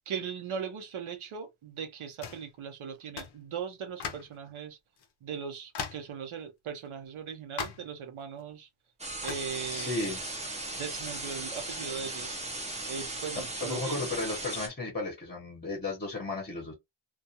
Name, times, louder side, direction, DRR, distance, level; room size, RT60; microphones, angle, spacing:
voice 1, 0.1-4.8 5.2-8.7 9.2-10.1 10.8-12.4 12.9-14.2, right 7 dB, 75° right, 0.8 m, -39 dB
sound 1, 2.2-2.5 3.2-3.4 4.0-4.4 5.0-5.1 5.7-6.1 7.6-7.9 9.2-9.5, left 6 dB, 55° left, 0.6 m, -38 dB
sound 2, 9.0-14.7, right 2 dB, 15° right, 0.5 m, -37 dB
voice 2, 9.7-10.2 13.6-16.7, left 3 dB, 20° left, 0.8 m, -34 dB
2.4 x 2.3 x 2.7 m
wide cardioid pair, 165°, 50 cm